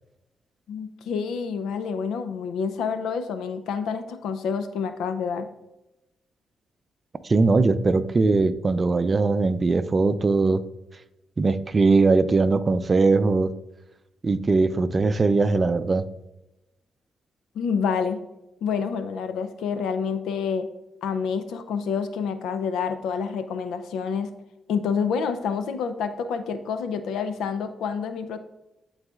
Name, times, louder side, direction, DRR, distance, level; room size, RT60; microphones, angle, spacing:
voice 1, 0.7-5.5 17.5-18.2 18.6-20.7 21.0-24.3 24.7-28.4, left 6 dB, 85° left, 9 dB, 0.5 m, -28 dB
voice 2, 7.2-10.6 11.4-13.5 14.2-16.1, right 3 dB, 40° right, 13 dB, 0.5 m, -20 dB
11.0 x 4.0 x 2.4 m, 0.95 s
supercardioid pair, 60°, 0 cm